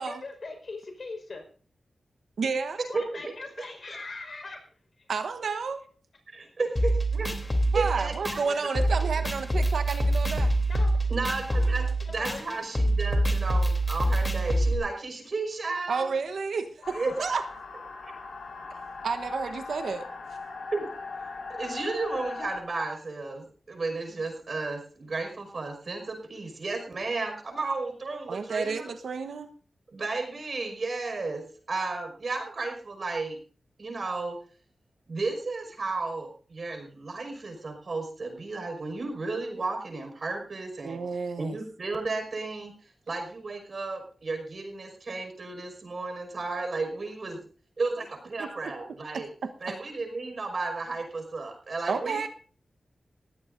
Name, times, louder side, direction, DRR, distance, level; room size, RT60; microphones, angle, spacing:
voice 1, 0.0-1.5 2.9-4.7 10.7-11.1 11.6-12.4, left 3 dB, 55° left, 4 dB, 4.9 m, -41 dB
voice 2, 2.4-2.8 5.1-5.8 7.7-10.5 15.9-17.4 19.0-20.1 28.3-29.5 40.8-41.6 48.4-48.7 49.1-49.7 51.9-52.3, right 5 dB, 85° right, 8 dB, 1.1 m, -31 dB
voice 3, 2.9-3.3 3.6-4.0 6.3-7.3 7.7-8.7 9.0-9.2 11.1-16.1 16.9-17.1 18.1-18.2 20.7-20.8 21.6-28.9 29.9-33.4 33.8-34.4 35.1-41.0 41.4-47.4 47.8-49.3 49.6-52.3, right 3 dB, 55° right, 4 dB, 5.6 m, -33 dB
sound 1, 6.8-14.7, right 1 dB, 20° left, 3.2 m, -26 dB
sound 2, 16.8-22.6, left 4 dB, 80° left, 5.1 m, -39 dB
21.5 x 16.0 x 2.7 m, 0.42 s
wide cardioid pair, 80°, 0 cm